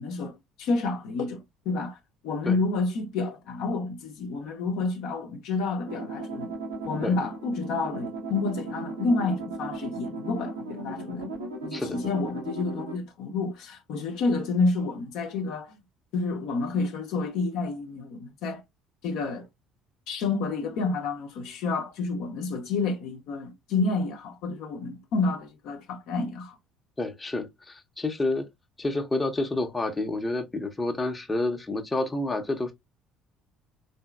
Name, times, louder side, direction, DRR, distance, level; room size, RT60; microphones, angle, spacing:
voice 1, 0.0-1.4 1.7-2.0 2.2-6.5 6.8-11.3 11.6-15.8 16.1-18.6 19.0-19.5 20.1-26.5, left 3 dB, 60° left, 0.6 m, -29 dB
sound 1, 5.8-13.0, right 3 dB, 80° right, 0.8 m, -36 dB
voice 2, 27.0-28.5 28.8-32.7, left 2 dB, 15° left, 0.7 m, -29 dB
3.7 x 2.7 x 2.2 m
figure-of-eight pair, 55°, 0 cm